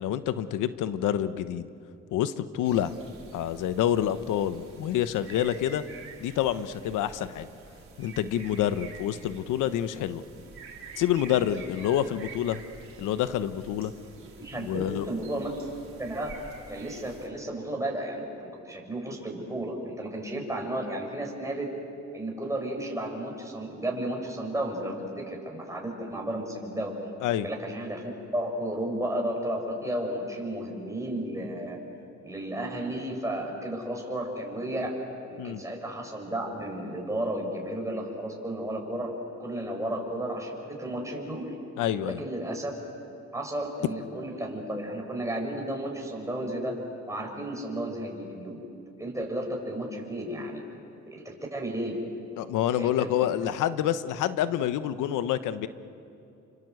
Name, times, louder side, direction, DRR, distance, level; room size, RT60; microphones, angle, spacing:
voice 1, 0.0-1.7 2.1-2.9 3.3-5.8 6.2-7.5 8.0-10.2 11.0-12.6 13.0-13.9 14.6-15.1 27.2-27.5 35.4-35.6 41.8-42.2 52.4-55.7, left 11 dB, 90° left, 12 dB, 1.1 m, -27 dB
sound 1, 2.6-17.3, right 4 dB, 45° right, 4.9 m, -48 dB
voice 2, 14.4-15.5 16.0-16.3 16.7-21.7 22.1-26.9 27.4-31.8 32.2-34.9 35.3-39.1 39.4-41.5 42.0-42.7 43.3-46.8 47.1-48.6 49.0-50.6 51.1-52.0 52.7-53.3, right 1 dB, 10° right, 0 dB, 6.5 m, -33 dB
29.0 x 25.0 x 7.9 m, 2.8 s
cardioid pair, 90°, 30 cm